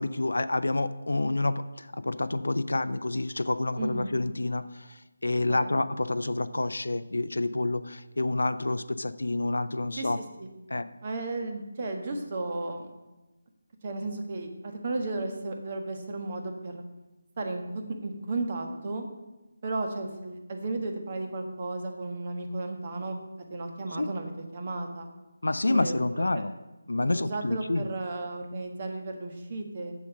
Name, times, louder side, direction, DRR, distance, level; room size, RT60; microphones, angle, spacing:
voice 1, 0.0-10.2 10.7-10.9 23.9-24.1 25.4-26.5 26.9-27.9, left 2 dB, 70° left, 13 dB, 0.6 m, -28 dB
voice 2, 3.8-4.1 5.5-5.7 10.0-10.1 10.4-10.5 11.0-12.9 13.8-16.8 17.4-19.0 19.6-23.2 23.5-25.1 25.6-26.2 27.0-29.9, right 2 dB, 40° right, 4 dB, 1.5 m, -34 dB
7.4 x 7.1 x 7.7 m, 1.1 s
figure-of-eight pair, 155°, 0 cm